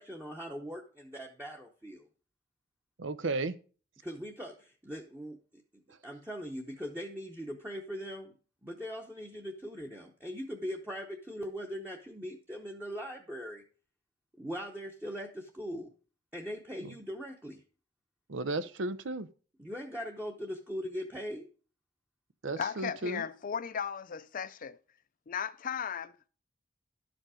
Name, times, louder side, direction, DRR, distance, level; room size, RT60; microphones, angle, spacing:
voice 1, 0.0-2.1 4.0-8.3 8.6-13.6 14.4-15.9 16.3-17.6 19.6-21.5, equal, 10° right, 0.9 m, -40 dB
voice 2, 3.0-3.5 16.8-16.9 18.3-19.3 22.4-23.2, right 2 dB, 80° right, 0.7 m, -34 dB
voice 3, 22.6-24.8 25.3-26.3, left 7 dB, 45° left, 0.5 m, -36 dB
12.0 x 5.2 x 4.9 m
head